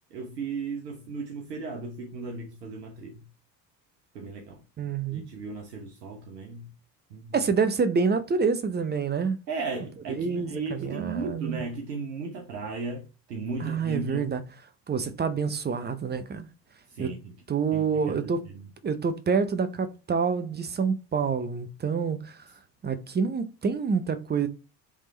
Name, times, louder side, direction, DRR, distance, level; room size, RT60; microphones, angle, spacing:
voice 1, 0.1-3.3 4.1-4.6 5.1-6.7 7.1-7.3 9.5-14.3 16.9-17.3 17.7-18.7, right 4 dB, 75° right, 1.2 m, -36 dB
voice 2, 4.8-5.2 7.3-9.4 10.2-11.6 13.6-14.4 14.9-16.5 17.0-17.1 17.5-18.4 18.8-22.4 22.8-24.5, right 5 dB, 20° right, 0.8 m, -27 dB
8.3 x 3.5 x 3.2 m
figure-of-eight pair, 60°, 49 cm